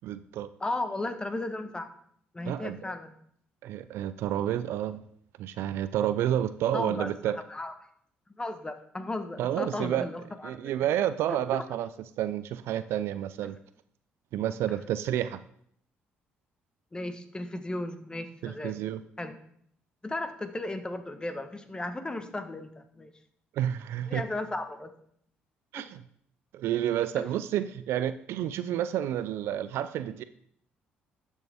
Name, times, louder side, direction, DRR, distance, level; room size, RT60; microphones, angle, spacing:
voice 1, 0.0-0.5 2.5-2.8 3.6-5.0 5.4-7.4 9.4-10.1 10.4-11.9 12.2-13.6 14.3-15.4 18.4-19.0 23.5-24.2 25.7-26.0 26.5-30.2, right 11 dB, 70° right, 13 dB, 0.4 m, -30 dB
voice 2, 0.6-1.9 2.3-3.1 6.7-7.1 7.5-7.7 8.4-10.7 11.3-11.6 13.4-13.5 16.9-18.7 19.2-19.4 20.0-23.1 24.1-24.9 25.7-25.8 27.2-27.3, left 2 dB, 20° left, 9 dB, 1.2 m, -35 dB
12.0 x 6.3 x 3.5 m, 0.66 s
supercardioid pair, 60°, 4 cm